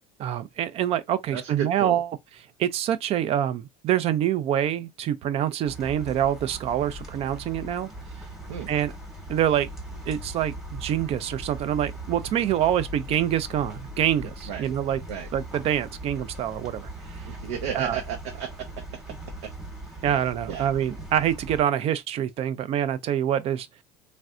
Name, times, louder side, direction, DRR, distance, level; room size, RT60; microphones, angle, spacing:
voice 1, 0.2-2.1 2.6-7.9 8.7-8.9 9.3-9.7 10.1-15.0 15.3-16.9 17.7-18.0 20.0-23.7, right 10 dB, 45° right, 0.5 m, -26 dB
voice 2, 1.3-2.0 8.5-8.7 14.5-14.7 15.1-15.3 17.2-18.8 19.4-19.5 19.9-20.0 20.5-20.7, right 8 dB, 90° right, 0.7 m, -33 dB
sound 1, 5.7-21.6, right 1 dB, ahead, 1.0 m, -40 dB
3.2 x 2.5 x 2.4 m
supercardioid pair, 115°, 14 cm